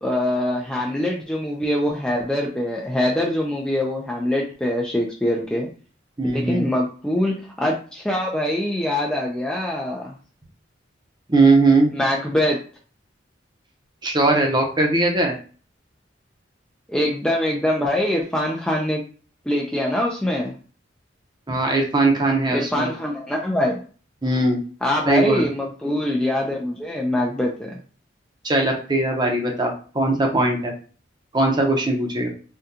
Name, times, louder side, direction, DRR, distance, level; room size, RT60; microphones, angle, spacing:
voice 1, 0.0-5.7 6.3-10.1 11.9-12.6 16.9-19.0 19.5-20.5 22.5-23.8 24.8-27.8, left 1 dB, 5° left, -2 dB, 0.4 m, -23 dB
voice 2, 6.2-6.7 11.3-11.9 14.0-15.3 21.5-22.9 24.2-24.6 25.1-25.5 28.4-30.7 31.3-32.3, right 2 dB, 25° right, 1 dB, 0.7 m, -19 dB
3.6 x 2.2 x 2.7 m, 0.39 s
head